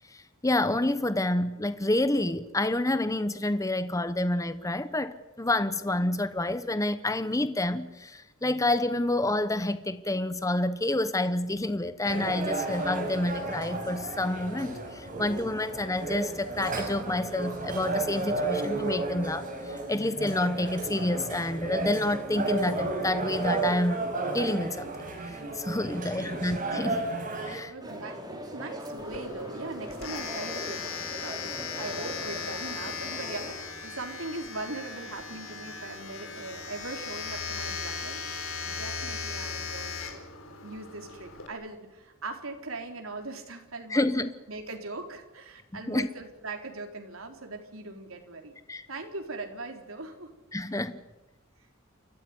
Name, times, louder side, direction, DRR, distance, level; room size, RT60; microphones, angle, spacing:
voice 1, 0.1-24.0 24.3-24.9 25.3-27.1 27.4-27.7 43.9-44.3 45.7-46.1 48.7-48.9 50.5-51.0, left 1 dB, 15° left, 0.9 m, -28 dB
sound 1, 12.0-27.6, right 3 dB, 40° right, 6.6 m, -33 dB
voice 2, 25.9-26.4 27.6-40.2 40.6-48.5 48.9-50.3, right 3 dB, 80° right, 4.1 m, -40 dB
sound 2, 27.8-33.5, equal, 20° right, 4.7 m, -40 dB
Domestic sounds home sounds, 29.0-41.5, left 5 dB, 85° left, 3.8 m, -38 dB
29.5 x 14.5 x 9.5 m
head